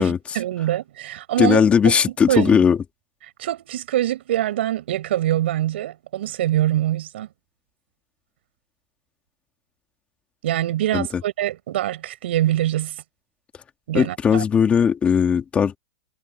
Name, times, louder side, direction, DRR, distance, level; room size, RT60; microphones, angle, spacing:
voice 1, 0.0-1.9 2.3-2.6 3.4-7.3 10.4-12.9 13.9-14.4, right 13 dB, 75° right, 6.3 m, -24 dB
voice 2, 1.4-2.8 10.9-11.1 13.9-15.8, left 7 dB, 20° left, 2.8 m, -18 dB
supercardioid pair, 140°, 6 cm